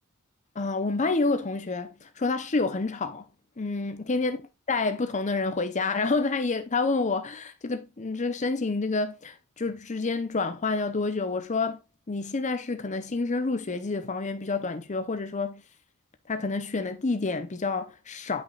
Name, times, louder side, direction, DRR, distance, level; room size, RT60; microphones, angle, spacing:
voice 1, 0.6-3.2 3.6-4.4 4.7-11.8 12.1-15.6 16.3-18.4, left 3 dB, 35° left, 0.7 m, -28 dB
8.3 x 5.6 x 2.3 m
head